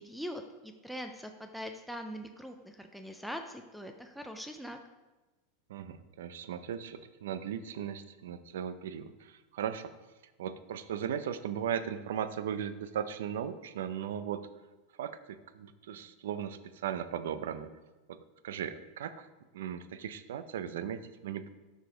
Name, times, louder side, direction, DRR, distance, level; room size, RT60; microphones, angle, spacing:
voice 1, 0.0-4.8, equal, ahead, 5 dB, 0.3 m, -42 dB
voice 2, 5.7-9.9 10.4-14.4 15.0-17.7 18.1-18.2 18.4-19.3 19.5-21.5, right 9 dB, 85° right, 12 dB, 0.5 m, -37 dB
6.5 x 5.0 x 5.0 m, 1.2 s
supercardioid pair, 165°, 0 cm